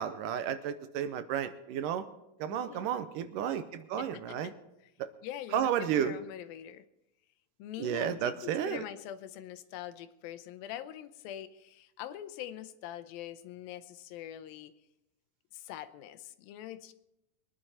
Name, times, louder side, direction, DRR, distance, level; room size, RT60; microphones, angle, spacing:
voice 1, 0.0-2.1 2.4-4.5 5.0-5.1 5.5-6.2 7.8-8.8, right 9 dB, 80° right, 10 dB, 2.2 m, -32 dB
voice 2, 2.5-2.9 4.0-4.5 5.2-6.8 7.6-14.7 15.5-16.9, left 11 dB, 90° left, 11 dB, 2.6 m, -44 dB
22.5 x 10.0 x 4.2 m, 0.86 s
omnidirectional pair, 4.1 m